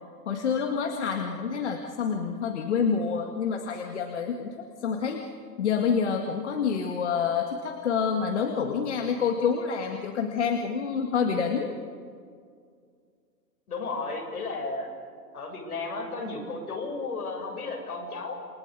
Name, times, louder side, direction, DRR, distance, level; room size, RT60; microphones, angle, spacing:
voice 1, 0.3-5.3 5.6-11.7, left 6 dB, 45° left, 3 dB, 2.0 m, -27 dB
voice 2, 13.7-14.9 15.3-18.3, left 3 dB, 60° left, 1 dB, 7.6 m, -33 dB
29.0 x 23.5 x 8.2 m, 2.2 s
hypercardioid pair, 180°, 50 cm